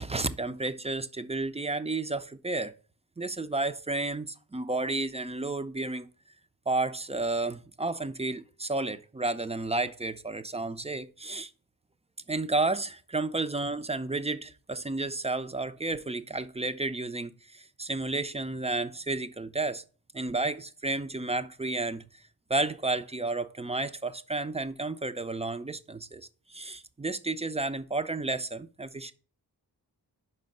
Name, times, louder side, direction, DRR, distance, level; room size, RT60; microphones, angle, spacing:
voice 1, 0.0-2.7 3.2-6.1 6.7-11.5 12.3-19.8 20.1-22.1 22.5-29.1, right 2 dB, 20° right, 0.3 m, -32 dB
5.4 x 5.0 x 5.2 m
wide cardioid pair, 120°, 39 cm